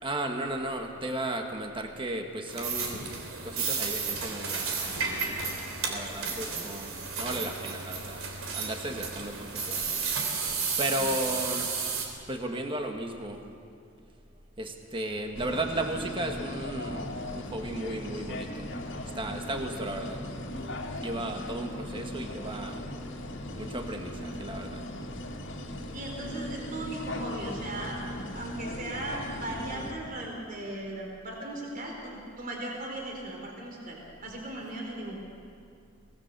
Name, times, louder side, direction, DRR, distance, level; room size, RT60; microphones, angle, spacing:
voice 1, 0.0-3.1 3.4-5.4 5.9-10.0 10.8-11.7 12.3-13.4 14.6-18.7 19.1-20.2 21.0-22.8 23.6-24.8, right 1 dB, 25° right, 4 dB, 1.5 m, -35 dB
sound 1, 2.5-12.1, right 5 dB, 80° right, 3.3 m, -32 dB
sound 2, 15.3-29.9, left 1 dB, 60° left, 2.1 m, -38 dB
voice 2, 25.9-35.2, right 1 dB, 45° right, 0 dB, 3.9 m, -38 dB
24.0 x 18.5 x 6.7 m, 2.3 s
head